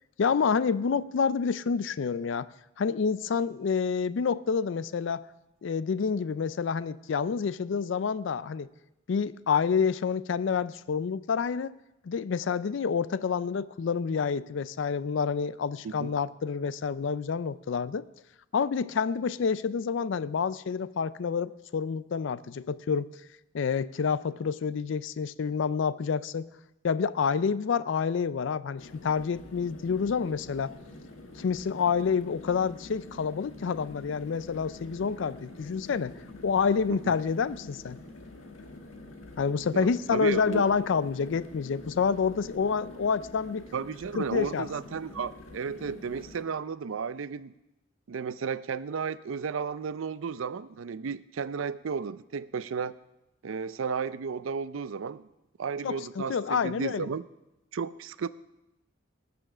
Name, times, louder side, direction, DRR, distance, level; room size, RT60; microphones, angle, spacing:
voice 1, 0.2-2.5 2.8-5.2 5.6-8.7 9.1-11.7 12.1-18.0 18.5-23.1 23.5-26.5 26.8-30.7 31.4-36.1 36.4-38.0 39.4-43.7 44.2-44.7 55.8-57.1, left 6 dB, 65° left, 17 dB, 0.4 m, -28 dB
sound 1, 28.8-46.4, left 2 dB, 85° left, 1.5 m, -47 dB
voice 2, 39.7-40.7 43.7-47.5 48.1-53.0 53.4-55.3 55.6-57.2 57.7-58.3, right 5 dB, 80° right, 16 dB, 0.5 m, -33 dB
19.0 x 6.9 x 6.1 m, 0.93 s
head